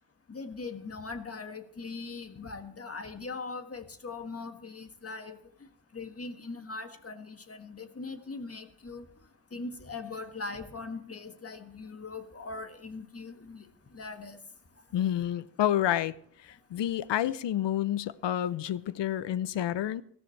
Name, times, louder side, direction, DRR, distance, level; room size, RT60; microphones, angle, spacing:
voice 1, 0.3-5.4 5.9-9.0 9.5-13.7 13.9-14.4, left 3 dB, 35° left, 7 dB, 1.6 m, -40 dB
voice 2, 14.9-16.1 16.4-20.0, left 11 dB, 80° left, 18 dB, 0.7 m, -29 dB
17.5 x 14.0 x 3.3 m, 0.63 s
cardioid pair, 75°, 42 cm